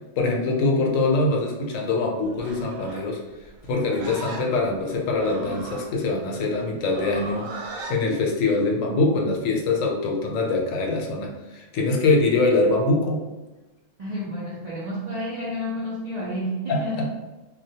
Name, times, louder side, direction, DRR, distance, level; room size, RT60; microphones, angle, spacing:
voice 1, 0.2-3.2 3.6-13.2 16.7-17.1, left 3 dB, 80° left, -1 dB, 1.0 m, -23 dB
Livestock farm animals working animals, 2.3-8.0, right 2 dB, 85° right, 1.0 m, -38 dB
voice 2, 14.0-17.1, left 1 dB, 60° right, -8 dB, 0.4 m, -30 dB
2.3 x 2.1 x 2.7 m, 1.1 s
omnidirectional pair, 1.3 m